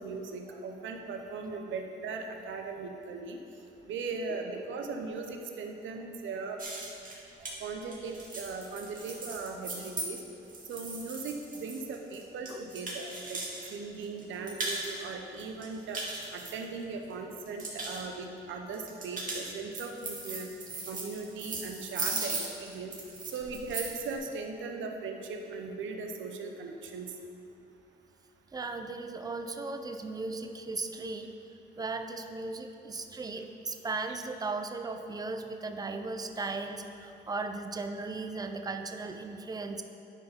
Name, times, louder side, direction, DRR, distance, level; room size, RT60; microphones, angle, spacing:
voice 1, 0.0-3.4 3.8-6.6 7.6-10.2 10.7-13.4 13.7-20.5 20.9-22.9 23.2-27.1, right 4 dB, 75° right, 3 dB, 0.9 m, -38 dB
sound 1, 6.6-13.7 14.0-15.0 15.4-17.0 17.4-18.0 18.7-24.1, right 3 dB, 40° right, 2.0 m, -38 dB
voice 2, 28.5-31.3 31.8-39.8, right 3 dB, 20° right, 7 dB, 0.6 m, -37 dB
10.0 x 4.8 x 5.2 m, 2.7 s
cardioid pair, 90°, 20 cm